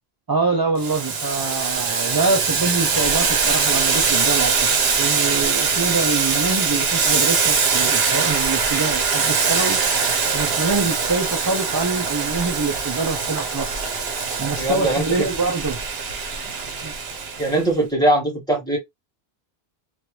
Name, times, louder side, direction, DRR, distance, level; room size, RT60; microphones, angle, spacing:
voice 1, 0.3-4.7 5.0-9.8 10.3-13.8 14.4-15.8 16.8-16.9, right 4 dB, 30° right, 0.5 m, -25 dB
Boiling, 0.8-17.6, right 5 dB, 75° right, 1.1 m, -22 dB
voice 2, 14.6-15.3 17.4-18.8, right 1 dB, 5° left, 1.5 m, -21 dB
3.1 x 2.6 x 3.0 m
omnidirectional pair, 1.0 m